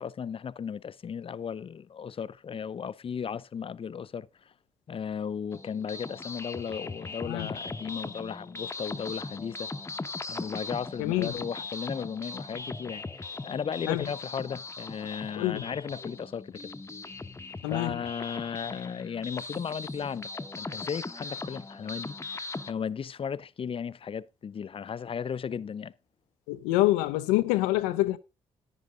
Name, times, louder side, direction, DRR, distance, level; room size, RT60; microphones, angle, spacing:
voice 1, 0.0-4.5 4.9-9.7 10.3-16.7 17.7-20.3 20.6-25.9, left 7 dB, 40° left, 0.6 m, -35 dB
sound 1, 5.5-22.7, left 3 dB, 20° left, 0.9 m, -39 dB
voice 2, 11.0-11.3 13.9-14.0 15.4-15.7 17.6-18.0 26.5-28.2, left 16 dB, 80° left, 0.6 m, -26 dB
10.5 x 9.8 x 3.8 m
hypercardioid pair, 45°, 14 cm